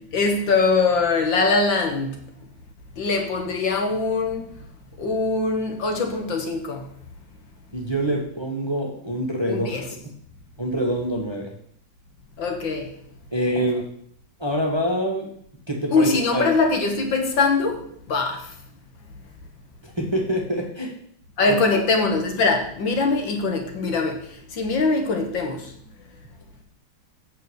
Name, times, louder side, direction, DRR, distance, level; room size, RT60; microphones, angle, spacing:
voice 1, 0.1-2.1 3.0-4.4 5.0-6.8 9.5-9.9 12.4-12.9 15.9-18.5 21.4-24.2 24.5-25.7, left 3 dB, 65° left, 2.0 m, -22 dB
voice 2, 7.7-9.7 10.6-11.5 13.3-13.9 14.4-15.3 15.7-16.5 19.8-20.9 21.5-21.6, right 1 dB, 15° right, 1.5 m, -25 dB
8.3 x 7.1 x 6.5 m
omnidirectional pair, 2.4 m